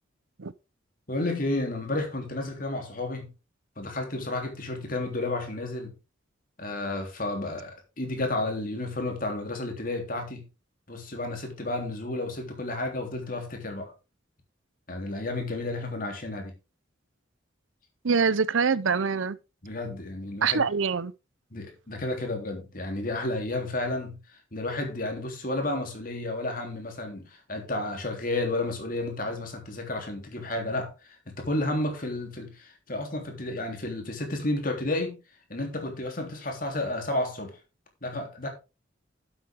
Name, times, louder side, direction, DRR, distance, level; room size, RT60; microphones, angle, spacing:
voice 1, 1.1-3.3 3.8-6.0 6.6-10.5 10.9-13.9 14.9-16.5 19.6-20.6 21.5-35.2 35.5-37.6 38.0-38.5, left 2 dB, 45° left, 3.4 m, -32 dB
voice 2, 18.0-19.4 20.4-21.1, right 5 dB, 85° right, 0.7 m, -24 dB
11.5 x 8.3 x 3.7 m
head